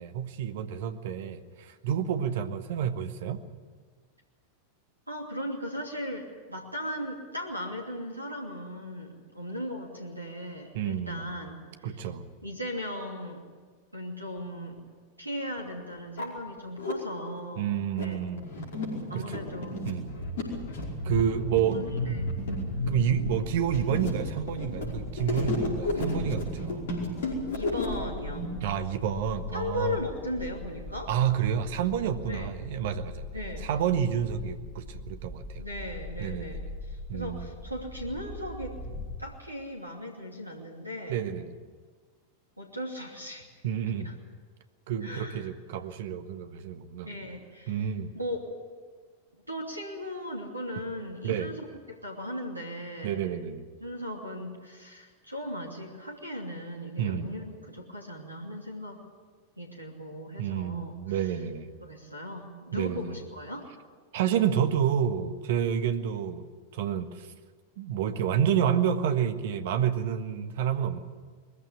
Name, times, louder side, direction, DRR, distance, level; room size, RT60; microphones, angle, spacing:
voice 1, 0.0-3.4 10.7-11.3 11.8-12.3 17.6-18.4 19.1-19.4 19.8-20.1 21.0-21.8 22.9-26.9 28.6-30.0 31.1-33.2 33.6-35.7 36.2-36.7 37.1-37.5 41.1-41.5 43.6-44.1 44.9-47.1 47.7-48.1 51.2-51.5 53.0-53.7 57.0-57.4 60.4-61.7 62.7-63.2 64.1-66.5 66.7-67.3 67.8-71.0, right 8 dB, 55° right, 9 dB, 1.4 m, -29 dB
voice 2, 5.1-12.0 12.4-13.4 13.9-14.8 15.2-18.3 19.1-19.8 21.7-22.3 27.3-28.5 29.5-31.1 32.3-32.5 33.3-33.7 35.6-38.8 39.2-41.3 42.6-43.5 43.9-44.1 45.0-45.5 47.0-48.5 49.5-53.2 53.8-59.0 59.6-61.2 61.8-63.7, equal, 85° right, 1 dB, 2.7 m, -37 dB
sound 1, 14.8-14.9 15.6-15.7 16.0-16.9 17.6-28.4, left 1 dB, 60° left, 5.1 m, -32 dB
sound 2, 22.8-39.1, left 2 dB, 30° left, 7.3 m, -41 dB
21.0 x 15.0 x 9.9 m, 1.5 s
figure-of-eight pair, 90°, 0 cm